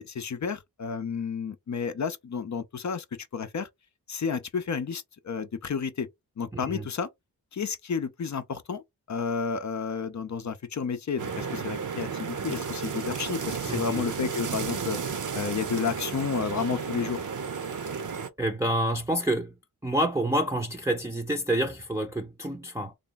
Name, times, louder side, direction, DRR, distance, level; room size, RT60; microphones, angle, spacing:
voice 1, 0.0-3.0 3.3-3.7 4.1-6.1 6.4-7.1 7.5-8.8 9.1-15.0 15.3-17.2, left 6 dB, 50° left, 0.6 m, -31 dB
voice 2, 6.5-6.9 13.7-14.1 18.4-19.5 19.8-22.9, right 1 dB, 10° right, 0.6 m, -28 dB
sound 1, 11.2-18.3, right 6 dB, 55° right, 0.8 m, -33 dB
3.3 x 2.2 x 3.9 m
cardioid pair, 50°, 38 cm